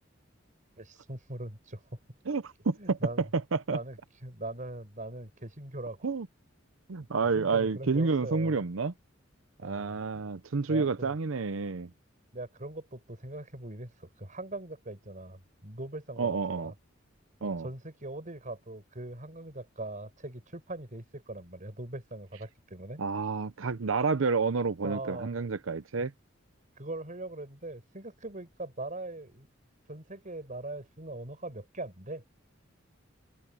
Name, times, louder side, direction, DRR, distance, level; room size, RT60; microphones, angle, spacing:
voice 1, 0.8-1.8 2.8-3.3 3.7-6.1 7.3-8.6 9.6-10.0 10.7-11.1 12.3-16.7 17.4-23.0 24.8-25.4 26.8-29.5 29.9-32.2, right 2 dB, 40° right, 5.4 m, -41 dB
voice 2, 2.3-3.8 6.0-6.3 6.9-8.9 9.6-11.9 16.2-16.7 17.4-17.7 23.0-26.1, right 4 dB, 80° right, 0.7 m, -29 dB
open air
head